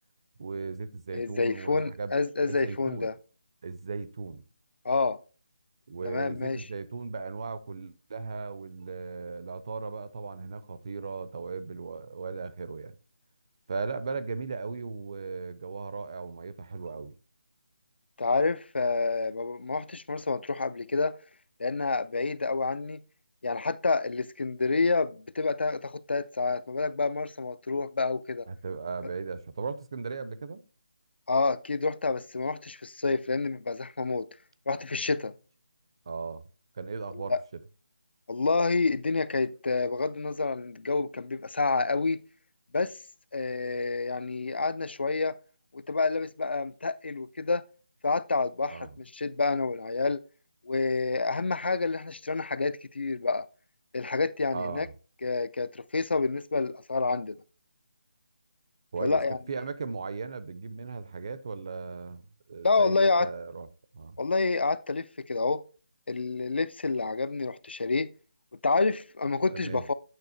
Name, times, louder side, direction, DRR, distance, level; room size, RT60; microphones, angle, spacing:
voice 1, 0.4-2.2 2.5-3.1 3.6-4.4 5.9-12.9 13.7-17.1 28.5-30.6 36.1-36.4 36.7-37.3 48.7-48.9 54.5-54.9 58.9-59.2 59.5-63.7 63.9-64.2 69.5-69.8, right 4 dB, 30° right, 0.4 m, -37 dB
voice 2, 1.1-3.1 4.8-5.2 6.0-6.6 18.2-21.2 21.6-23.0 23.4-28.5 31.3-34.3 34.7-35.3 37.1-37.4 38.3-42.2 42.7-43.0 43.3-45.4 45.7-47.6 48.0-50.2 50.6-53.5 53.9-54.9 55.2-57.4 59.0-59.4 62.6-63.3 64.2-65.6 66.1-68.1 68.6-69.9, left 3 dB, 85° left, 0.5 m, -28 dB
8.8 x 3.1 x 4.2 m
figure-of-eight pair, 175°, 6 cm